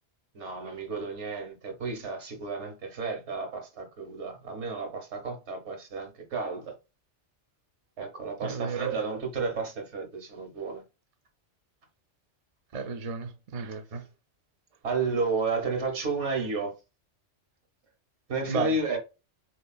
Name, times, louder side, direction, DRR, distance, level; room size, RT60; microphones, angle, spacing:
voice 1, 0.3-6.7 8.0-10.8 14.8-16.7 18.3-19.0, right 4 dB, 75° right, 1.3 m, -32 dB
voice 2, 8.4-8.9 12.7-14.0 18.5-18.8, right 4 dB, 50° right, 0.4 m, -33 dB
3.7 x 2.8 x 2.3 m
omnidirectional pair, 1.2 m